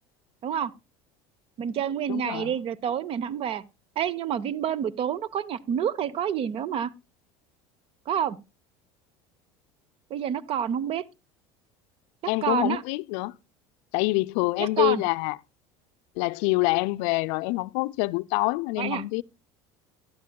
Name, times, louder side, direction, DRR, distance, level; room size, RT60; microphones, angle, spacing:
voice 1, 1.6-3.6 4.0-6.9 8.1-8.4 10.1-11.0 12.4-12.8 14.6-15.0 18.8-19.0, right 9 dB, 45° right, 0.6 m, -28 dB
voice 2, 2.1-2.5 12.3-13.3 13.9-15.4 16.2-19.2, left 23 dB, 75° left, 0.4 m, -26 dB
12.0 x 11.0 x 2.2 m
supercardioid pair, 100°, 13 cm